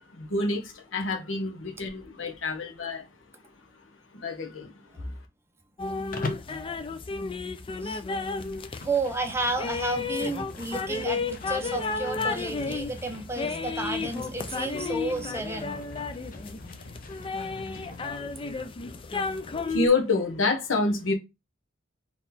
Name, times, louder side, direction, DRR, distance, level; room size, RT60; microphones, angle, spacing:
voice 1, 0.1-3.1 4.1-5.1 18.2-18.3 19.7-21.1, left 3 dB, 85° left, 1.0 m, -28 dB
sound 1, 5.8-19.9, left 4 dB, 30° left, 0.4 m, -33 dB
Livestock farm animals working animals, 6.1-6.6 8.3-18.1, left 2 dB, 45° left, 0.8 m, -42 dB
voice 2, 8.8-15.8, right 2 dB, 15° right, 0.7 m, -32 dB
3.9 x 3.1 x 4.1 m
head